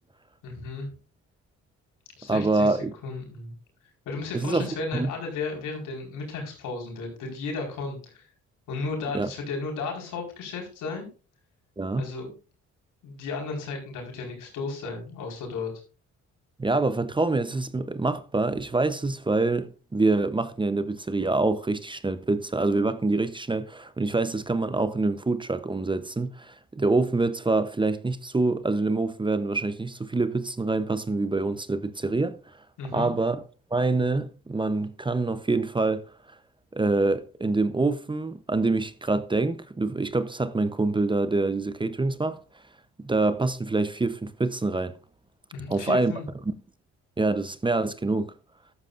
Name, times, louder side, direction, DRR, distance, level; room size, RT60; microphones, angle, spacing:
voice 1, 0.4-0.9 2.2-2.8 3.0-3.5 4.0-8.3 8.7-11.1 12.0-12.3 13.0-15.7 32.8-33.1 45.5-46.3, left 3 dB, 90° left, 4.7 m, -34 dB
voice 2, 2.3-2.9 4.3-5.1 9.1-9.3 11.8-12.0 16.6-32.4 32.9-33.4 33.7-36.1 36.7-42.4 43.0-44.9 45.7-46.1 47.2-48.3, right 3 dB, 15° right, 0.8 m, -26 dB
13.5 x 12.0 x 2.5 m
cardioid pair, 90°, 30 cm